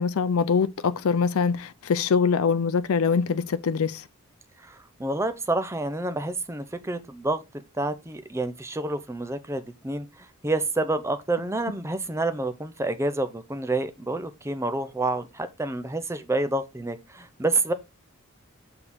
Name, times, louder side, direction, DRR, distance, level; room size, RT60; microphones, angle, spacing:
voice 1, 0.0-4.0, left 5 dB, 85° left, 0.5 m, -23 dB
voice 2, 4.6-17.7, right 2 dB, 15° right, 0.6 m, -28 dB
6.0 x 3.8 x 6.0 m
head